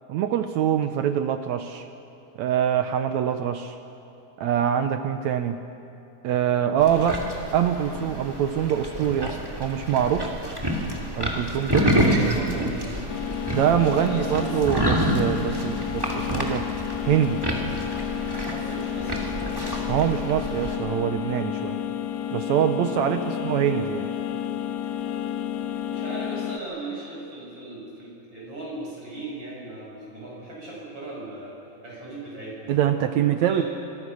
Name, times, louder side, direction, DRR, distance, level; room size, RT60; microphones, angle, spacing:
voice 1, 0.1-1.9 2.4-3.8 4.4-5.6 6.2-7.2 7.5-10.3 11.2-12.7 13.5-16.6 17.0-17.4 19.9-21.8 22.3-24.1 32.7-33.6, right 9 dB, 70° right, 8 dB, 1.8 m, -24 dB
sound 1, 6.8-20.8, right 1 dB, 10° right, 2.3 m, -28 dB
voice 2, 11.9-12.9 13.9-14.7 18.4-19.6 23.1-23.5 25.8-31.5 31.8-33.1 33.4-33.6, right 2 dB, 35° right, -5 dB, 8.3 m, -38 dB
sound 2, 13.1-26.6, left 10 dB, 80° left, 1.6 m, -31 dB
26.0 x 23.5 x 6.4 m, 2.7 s
omnidirectional pair, 3.8 m